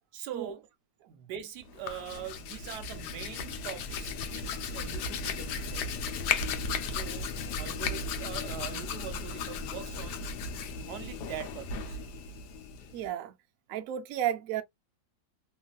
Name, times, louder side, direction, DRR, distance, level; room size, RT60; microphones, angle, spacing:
voice 1, 0.1-0.6 1.0-5.9 6.7-10.4 10.9-12.0, right 10 dB, 70° right, 1.1 m, -43 dB
Hands, 1.7-13.1, left 5 dB, 70° left, 1.1 m, -35 dB
voice 2, 12.9-13.3 13.7-14.6, right 11 dB, 85° right, 0.7 m, -32 dB
3.0 x 2.6 x 2.2 m
omnidirectional pair, 2.0 m